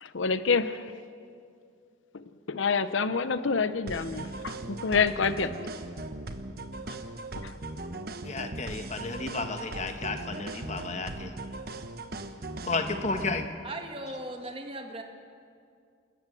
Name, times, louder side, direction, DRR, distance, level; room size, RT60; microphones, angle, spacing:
voice 1, 0.0-0.9 2.1-5.5 6.9-7.0 7.4-7.5, left 5 dB, 80° left, 13 dB, 0.8 m, -28 dB
sound 1, 3.9-13.5, right 2 dB, 50° right, 1.1 m, -39 dB
voice 2, 8.2-11.3 12.7-13.5, left 3 dB, 35° left, 7 dB, 1.3 m, -32 dB
voice 3, 13.6-15.0, right 1 dB, 30° right, 4 dB, 1.7 m, -38 dB
27.5 x 14.0 x 7.6 m, 2.4 s
head